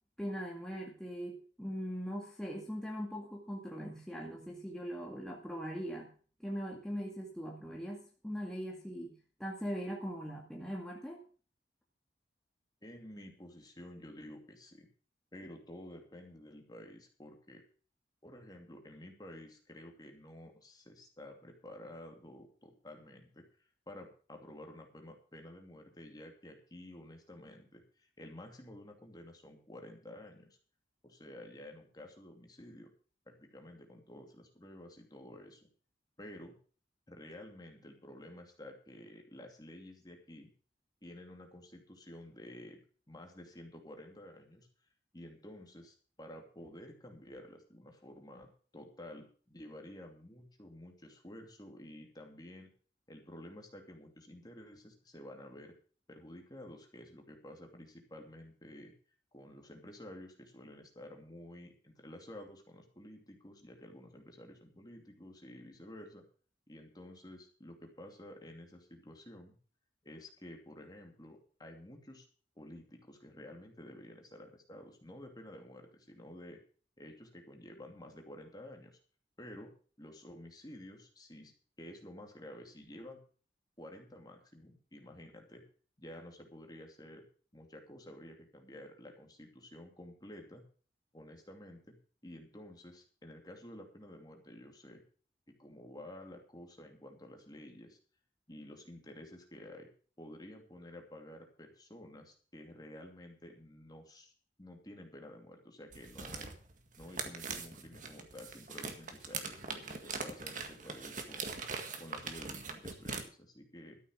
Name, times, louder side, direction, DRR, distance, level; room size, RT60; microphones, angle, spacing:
voice 1, 0.2-6.1 6.4-11.2, equal, 5° left, -2 dB, 2.1 m, -41 dB
voice 2, 12.8-14.9 15.3-17.6 18.2-23.5 23.9-30.5 31.0-32.9 33.3-35.7 36.2-36.6 37.1-40.5 41.0-42.8 43.1-44.7 45.1-48.5 48.7-52.7 53.1-55.7 56.1-58.9 59.3-66.2 66.7-69.6 70.0-72.3 72.6-76.6 77.0-78.9 79.4-79.7 80.0-83.2 83.8-85.6 86.0-87.2 87.5-90.6 91.1-92.0 92.2-95.0 95.5-98.0 98.5-99.9 100.2-104.3 104.6-106.5 107.0-111.6 112.0-114.0, left 1 dB, 20° left, 3 dB, 2.6 m, -51 dB
sound 1, 105.9-113.2, right 4 dB, 45° right, 1.8 m, -42 dB
13.5 x 8.1 x 6.3 m, 0.41 s
head